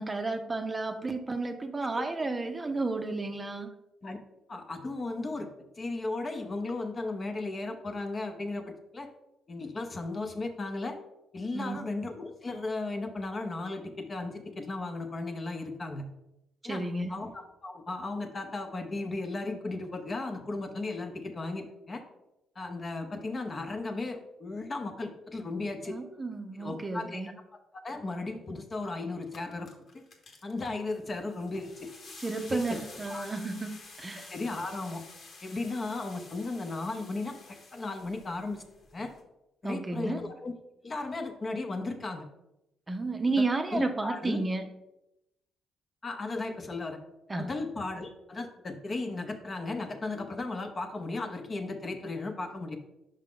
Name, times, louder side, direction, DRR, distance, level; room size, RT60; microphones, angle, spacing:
voice 1, 0.0-3.7 11.5-11.8 16.6-17.2 25.9-27.3 32.2-34.3 39.6-40.2 42.9-44.6 47.3-47.5, right 3 dB, 25° right, 6 dB, 0.6 m, -32 dB
voice 2, 4.5-5.5 5.8-9.1 9.5-11.0 11.3-16.1 16.6-16.8 17.1-22.0 22.6-26.0 26.6-27.2 27.7-30.0 30.4-31.9 32.5-32.8 33.1-33.3 34.3-35.0 35.4-38.7 38.9-39.1 39.6-40.5 40.8-42.2 43.4-43.5 43.7-44.4 46.0-47.0 47.3-52.8, left 2 dB, 35° left, 5 dB, 0.8 m, -35 dB
sound 1, 28.7-28.8 29.1-39.2, left 3 dB, 55° left, 1.2 m, -50 dB
5.5 x 5.0 x 3.7 m, 0.89 s
cardioid pair, 90°, 0 cm